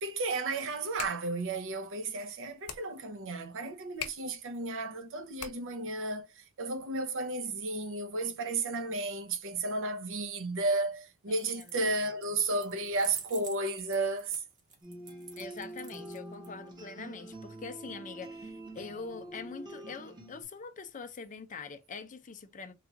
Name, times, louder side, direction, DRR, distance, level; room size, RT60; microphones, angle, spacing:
voice 1, 0.0-14.4, right 2 dB, 60° right, 0.7 m, -33 dB
sound 1, 0.7-5.9, left 8 dB, 70° left, 0.7 m, -46 dB
voice 2, 11.3-11.9 15.4-22.7, left 5 dB, 35° left, 0.5 m, -44 dB
sound 2, 11.3-11.9 12.2-16.5, right 5 dB, 35° right, 1.2 m, -49 dB
sound 3, 14.8-20.4, right 1 dB, 20° right, 0.9 m, -45 dB
3.6 x 2.3 x 2.8 m
head